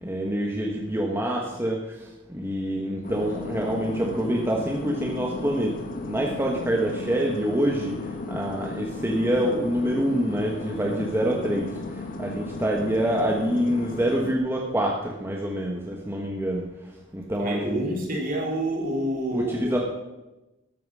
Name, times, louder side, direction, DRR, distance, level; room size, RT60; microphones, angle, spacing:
voice 1, 0.0-5.7 6.0-7.9 8.3-11.7 12.2-16.6 17.1-17.8 19.3-19.8, right 1 dB, 10° right, -1 dB, 1.3 m, -26 dB
sound 1, 3.0-14.4, left 3 dB, 45° left, 1.2 m, -35 dB
voice 2, 17.4-19.8, right 1 dB, 45° right, 0 dB, 3.8 m, -28 dB
13.0 x 9.0 x 6.3 m, 1.0 s
head